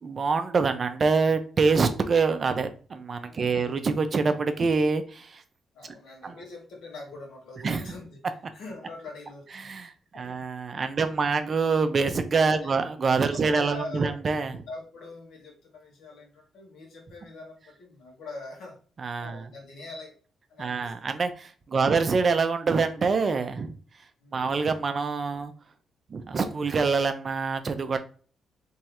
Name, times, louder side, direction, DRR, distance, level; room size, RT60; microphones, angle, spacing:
voice 1, 0.0-5.4 6.2-6.3 7.6-7.9 9.6-14.5 19.0-19.4 20.6-23.7 24.3-25.5 26.1-28.0, right 4 dB, 40° right, 0.5 m, -25 dB
voice 2, 3.2-3.8 5.7-8.2 8.5-9.7 10.1-10.4 11.0-11.2 12.5-12.8 13.3-14.1 14.7-18.8 19.2-20.1 20.5-20.9 21.7-21.9 24.2-24.5, left 2 dB, 80° left, 1.6 m, -43 dB
3.5 x 3.1 x 3.0 m
cardioid pair, 95°, 0 cm